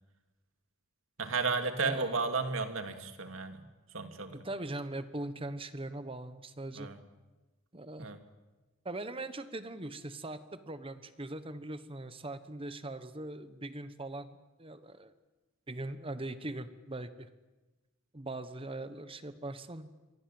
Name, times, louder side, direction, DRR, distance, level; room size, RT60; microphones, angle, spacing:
voice 1, 1.2-3.6 3.9-4.4 6.8-7.0 8.0-8.2, right 4 dB, 70° right, 6 dB, 2.7 m, -33 dB
voice 2, 1.8-2.2 4.3-6.9 7.7-8.1 8.8-15.1 15.7-17.3 18.1-19.9, right 2 dB, 25° right, 12 dB, 1.2 m, -41 dB
27.5 x 23.5 x 7.8 m, 1.2 s
head